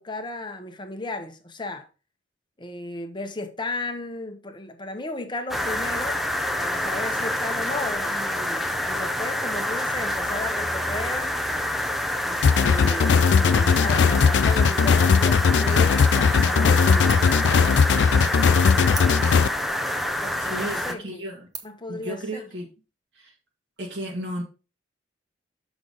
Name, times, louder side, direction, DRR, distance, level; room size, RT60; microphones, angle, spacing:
voice 1, 0.0-1.9 2.6-6.2 6.6-11.3 12.2-17.2 20.2-21.3 21.6-22.5, left 2 dB, 25° left, 1.0 m, -35 dB
sound 1, 5.5-20.9, left 1 dB, ahead, 0.7 m, -27 dB
sound 2, 12.4-19.5, left 6 dB, 70° left, 0.3 m, -19 dB
sound 3, 17.1-17.5 17.9-18.0 18.9-19.6 20.2-20.3 20.9-21.1 21.5-21.9, right 4 dB, 20° right, 1.2 m, -39 dB
voice 2, 20.4-21.5 21.9-22.7 23.2-23.3 23.8-24.4, equal, 70° right, 1.8 m, -33 dB
7.1 x 6.2 x 3.9 m
head